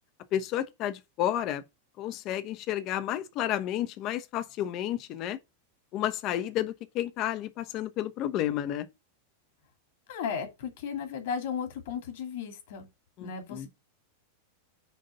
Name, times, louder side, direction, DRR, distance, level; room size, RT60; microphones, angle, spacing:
voice 1, 0.3-1.6 2.0-5.4 5.9-8.9 13.2-13.7, left 12 dB, 40° left, 1.0 m, -31 dB
voice 2, 10.1-12.9 13.2-13.7, left 7 dB, 55° left, 2.4 m, -35 dB
9.2 x 3.8 x 5.3 m
figure-of-eight pair, 90°, 0 cm